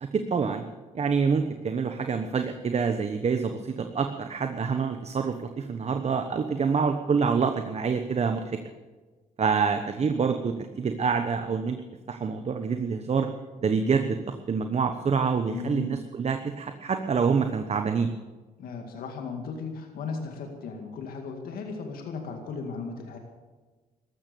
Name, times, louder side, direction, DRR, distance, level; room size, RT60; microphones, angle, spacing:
voice 1, 0.0-0.6 0.9-8.4 9.4-11.8 12.1-13.3 13.6-14.2 14.5-18.1, right 5 dB, 45° right, 7 dB, 1.1 m, -26 dB
voice 2, 15.5-16.0 18.6-23.2, left 5 dB, 80° left, 3 dB, 2.1 m, -36 dB
14.5 x 12.5 x 6.9 m, 1.3 s
cardioid pair, 80°, 15 cm